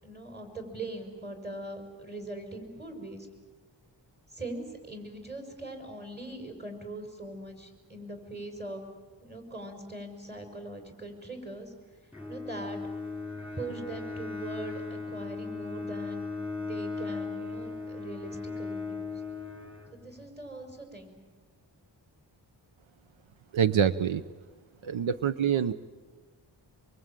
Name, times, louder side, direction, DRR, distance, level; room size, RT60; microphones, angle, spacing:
voice 1, 0.0-3.3 4.3-8.8 9.2-11.7 12.3-12.8 13.6-19.1 19.9-21.2, right 2 dB, 20° right, 4 dB, 6.0 m, -41 dB
Bowed string instrument, 12.1-20.3, left 3 dB, 5° right, 3.3 m, -37 dB
voice 2, 23.5-24.2 24.8-25.7, right 8 dB, 90° right, 11 dB, 0.8 m, -25 dB
24.5 x 24.0 x 9.0 m, 1.4 s
wide cardioid pair, 85°, 46 cm